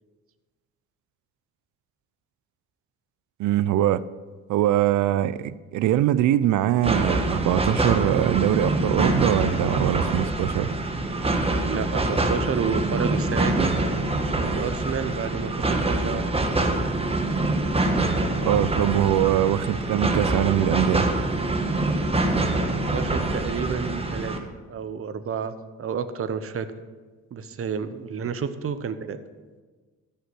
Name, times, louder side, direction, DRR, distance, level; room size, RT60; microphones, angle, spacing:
voice 1, 3.4-4.0 4.5-10.7 18.4-21.1, right 12 dB, 75° right, 0.5 m, -22 dB
sound 1, 6.8-24.4, right 2 dB, 20° right, 1.2 m, -25 dB
voice 2, 11.7-13.7 14.4-16.3 22.9-25.5 25.8-26.7 27.3-29.2, right 6 dB, 45° right, 0.9 m, -30 dB
13.5 x 5.7 x 6.3 m
cardioid pair, 90°, 30 cm